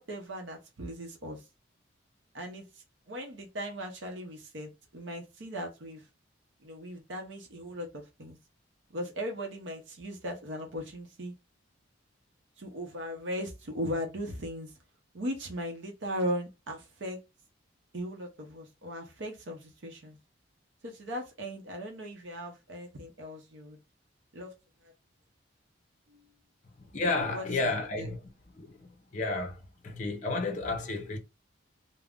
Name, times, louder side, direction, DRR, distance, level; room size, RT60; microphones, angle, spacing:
voice 1, 0.0-1.4 2.3-6.0 6.6-8.4 8.9-11.3 12.6-14.7 15.1-17.2 17.9-20.2 20.8-23.8 24.3-24.6 24.8-24.9 26.1-26.3 27.3-28.1, equal, 65° right, 0.7 m, -38 dB
voice 2, 26.8-28.2 28.5-31.2, left 3 dB, 40° left, 0.5 m, -32 dB
2.4 x 2.0 x 3.4 m
head